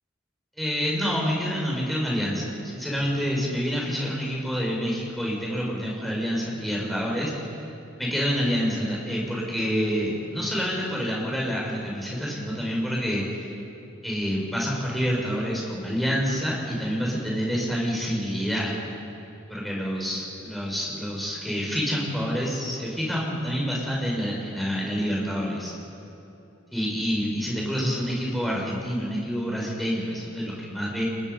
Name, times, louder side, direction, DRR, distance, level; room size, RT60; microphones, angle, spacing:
voice 1, 0.6-7.5 8.0-13.5 14.0-18.7 19.5-25.7 26.7-31.0, equal, ahead, -4 dB, 5.7 m, -27 dB
30.0 x 20.0 x 5.5 m, 2.9 s
head